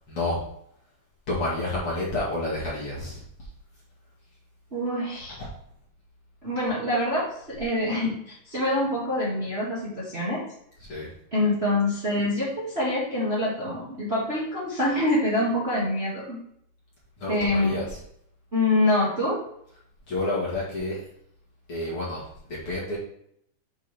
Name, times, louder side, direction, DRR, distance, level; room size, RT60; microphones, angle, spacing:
voice 1, 0.1-0.4 1.3-3.5 10.8-11.1 17.2-18.0 20.1-21.0 21.7-23.0, left 2 dB, 45° left, -6 dB, 2.3 m, -30 dB
voice 2, 4.7-5.4 6.4-10.4 11.3-16.4 17.3-17.7 18.5-19.4, left 1 dB, 25° right, -7 dB, 1.5 m, -25 dB
8.8 x 4.9 x 3.5 m, 0.69 s
omnidirectional pair, 3.9 m